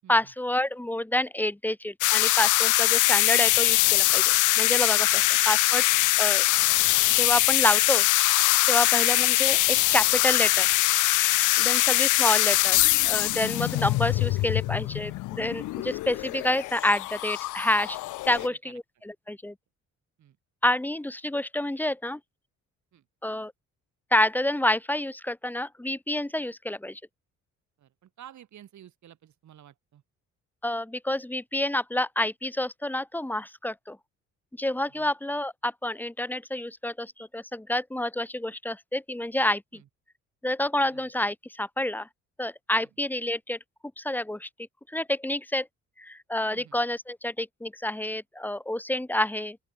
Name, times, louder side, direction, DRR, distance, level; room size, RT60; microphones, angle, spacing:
voice 1, 0.1-5.9 6.2-6.4 7.1-8.1 8.7-10.7 11.6-18.0 18.3-19.5 20.6-22.2 23.2-23.5 24.1-27.0 30.6-34.0 34.6-39.8 40.4-42.1 42.4-43.6 44.0-44.5 44.9-45.7 46.0-49.6, left 1 dB, 5° left, 1.0 m, -28 dB
sound 1, 2.0-18.5, left 18 dB, 80° left, 0.6 m, -23 dB
voice 2, 18.3-18.8 20.2-20.4 22.9-23.0 27.8-30.0 34.9-35.1 39.7-39.9 40.9-41.1 46.5-46.8, right 11 dB, 70° right, 7.5 m, -52 dB
open air
cardioid pair, 90°, 30 cm